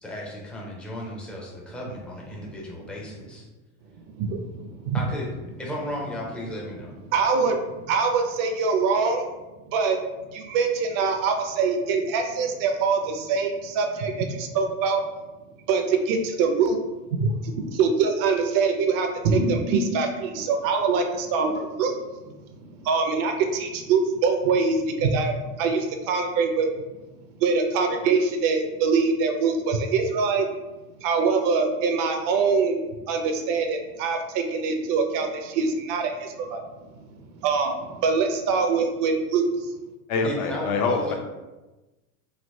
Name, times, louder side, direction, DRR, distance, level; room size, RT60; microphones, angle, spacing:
voice 1, 0.0-3.5 4.9-5.3 5.6-6.9 40.2-41.1, left 1 dB, 5° left, -3 dB, 0.4 m, -34 dB
voice 2, 4.1-5.0 7.1-9.2 9.7-10.0 10.3-15.0 15.7-16.8 17.1-21.9 22.7-26.7 27.4-30.5 31.0-32.8 33.1-36.6 37.4-39.7, right 4 dB, 50° right, 5 dB, 0.5 m, -24 dB
voice 3, 40.1-41.1, left 4 dB, 75° left, 4 dB, 0.7 m, -25 dB
3.2 x 2.8 x 2.6 m, 1.1 s
supercardioid pair, 115°, 45 cm